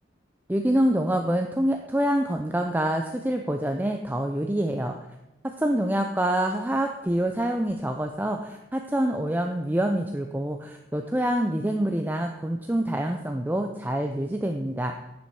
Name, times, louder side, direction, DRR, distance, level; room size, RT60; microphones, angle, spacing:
voice 1, 0.5-5.0 5.6-15.0, right 1 dB, 10° right, 4 dB, 0.5 m, -26 dB
10.5 x 7.0 x 4.7 m, 0.97 s
head